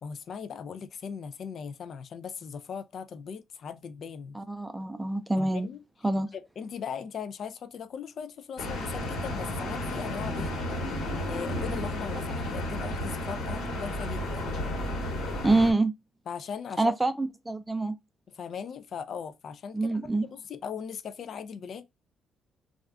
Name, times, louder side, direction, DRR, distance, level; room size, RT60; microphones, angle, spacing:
voice 1, 0.0-4.4 5.4-5.8 6.3-10.6 11.3-14.6 16.3-16.9 18.3-20.0 20.3-21.9, left 6 dB, 60° left, 0.3 m, -39 dB
voice 2, 4.3-5.7 6.0-6.3 15.4-15.9 16.8-17.9 19.7-20.3, right 2 dB, 10° right, 0.4 m, -26 dB
sound 1, 8.6-15.7, left 1 dB, 85° left, 1.2 m, -32 dB
2.4 x 2.2 x 3.5 m
cardioid pair, 90°, 0 cm